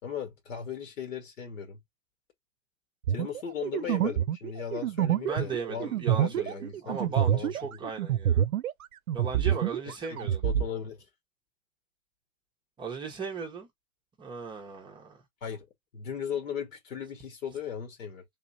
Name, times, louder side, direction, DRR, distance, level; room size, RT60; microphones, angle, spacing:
voice 1, 0.0-1.8 3.1-7.8 10.1-11.0 15.4-15.7 15.9-18.2, left 8 dB, 65° left, 1.6 m, -37 dB
sound 1, 3.0-8.8 9.1-10.7, right 10 dB, 80° right, 0.6 m, -27 dB
voice 2, 5.2-8.4 9.1-10.4 12.8-13.7 14.2-15.2, right 5 dB, 10° right, 0.7 m, -37 dB
3.5 x 2.9 x 2.6 m
hypercardioid pair, 130°, 42 cm